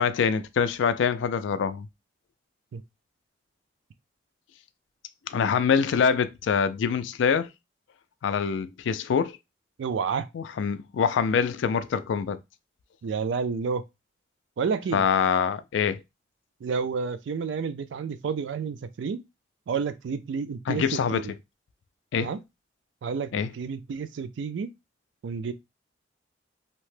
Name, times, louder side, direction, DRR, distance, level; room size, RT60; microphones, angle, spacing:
voice 1, 0.0-1.9 5.3-7.5 8.2-9.4 10.3-12.4 14.9-16.0 20.7-21.2 22.1-22.3 23.3-23.5, left 6 dB, 80° left, 0.3 m, -25 dB
voice 2, 9.8-10.3 13.0-13.8 14.6-15.0 16.6-19.2 19.7-21.3 22.2-22.4 23.0-24.7 25.2-25.5, right 5 dB, 75° right, 0.3 m, -30 dB
2.8 x 2.1 x 3.1 m
head